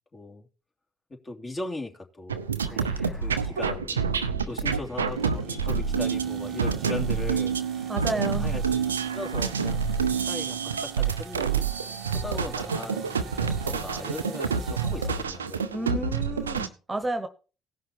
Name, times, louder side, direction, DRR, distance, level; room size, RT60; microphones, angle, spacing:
voice 1, 0.1-0.5 1.1-8.6 9.1-9.8 10.2-11.7 12.1-16.0, left 2 dB, 30° left, 2.8 m, -39 dB
sound 1, 2.3-16.7, right 6 dB, 90° right, 0.6 m, -28 dB
sound 2, 2.6-7.3, left 2 dB, 5° left, 2.7 m, -47 dB
sound 3, 5.1-15.3, right 7 dB, 55° right, 0.9 m, -44 dB
voice 2, 7.9-8.5 15.7-17.3, right 1 dB, 20° right, 1.3 m, -31 dB
16.5 x 5.7 x 4.6 m
hypercardioid pair, 50°, 0 cm